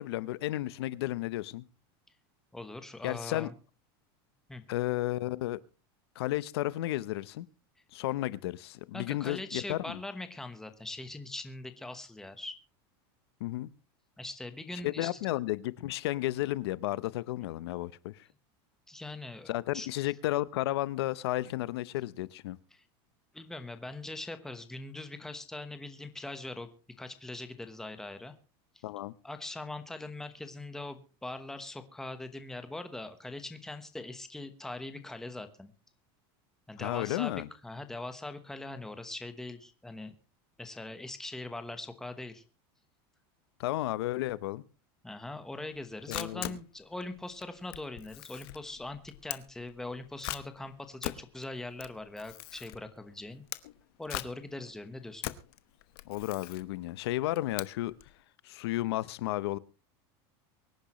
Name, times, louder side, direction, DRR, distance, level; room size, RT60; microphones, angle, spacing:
voice 1, 0.0-1.6 3.0-3.5 4.7-5.6 6.2-7.5 7.9-10.0 13.4-13.7 14.8-18.3 19.5-22.6 28.8-29.1 36.8-37.5 43.6-44.6 46.1-46.6 56.1-57.9 58.4-59.6, left 16 dB, 90° left, 0.8 m, -33 dB
voice 2, 2.5-3.5 4.5-4.6 8.9-12.6 14.2-15.2 18.9-19.9 22.7-22.8 23.3-26.7 27.0-28.3 28.7-28.8 29.2-35.7 36.7-40.2 40.6-42.4 45.0-53.4 54.0-55.3, left 2 dB, 5° left, 1.1 m, -41 dB
Camera, 45.7-58.1, left 17 dB, 65° left, 1.1 m, -42 dB
24.0 x 10.5 x 3.1 m
supercardioid pair, 170°, 13 cm